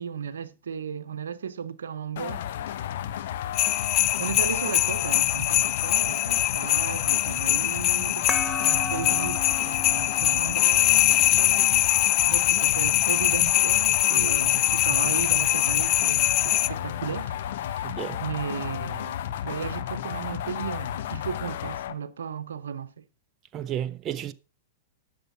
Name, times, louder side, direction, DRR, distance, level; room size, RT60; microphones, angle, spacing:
voice 1, 0.0-3.1 4.2-11.9 12.3-23.1, right 7 dB, 80° right, 0.9 m, -35 dB
sound 1, 2.2-21.9, left 11 dB, 65° left, 1.0 m, -33 dB
sound 2, 3.5-16.7, left 16 dB, 40° left, 0.4 m, -23 dB
sound 3, 8.3-13.4, left 2 dB, 15° left, 1.4 m, -37 dB
voice 2, 17.8-18.2 23.5-24.3, right 11 dB, 35° right, 0.7 m, -32 dB
11.5 x 6.9 x 5.6 m
hypercardioid pair, 110°, 0 cm